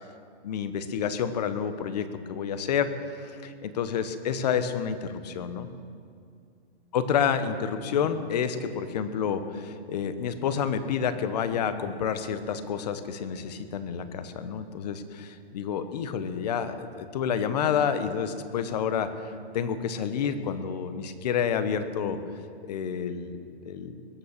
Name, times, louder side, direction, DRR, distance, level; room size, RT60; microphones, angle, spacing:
voice 1, 0.4-2.9 3.2-5.7 6.9-22.2 22.6-23.4 23.6-23.9, left 7 dB, 40° left, 10 dB, 1.1 m, -29 dB
21.5 x 8.7 x 6.6 m, 2.2 s
hypercardioid pair, 160°, 32 cm